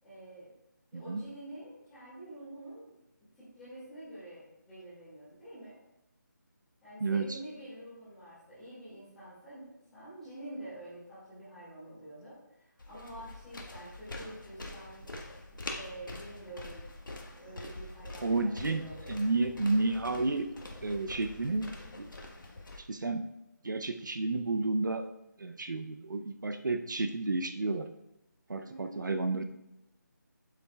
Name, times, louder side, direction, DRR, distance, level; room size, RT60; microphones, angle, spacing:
voice 1, 0.0-0.5 0.9-2.9 3.3-5.8 6.8-15.0 15.5-16.8 17.3-19.3 28.6-29.4, right 1 dB, ahead, -14 dB, 2.2 m, -47 dB
voice 2, 7.0-7.4 18.2-18.8 19.1-20.5 20.8-21.7 22.9-23.2 23.6-25.1 25.4-27.9 28.5-29.4, right 3 dB, 75° right, 7 dB, 0.7 m, -31 dB
sound 1, 12.8-22.8, left 2 dB, 90° left, 1.5 m, -45 dB
11.5 x 7.3 x 2.4 m, 0.90 s
figure-of-eight pair, 180°, 10 cm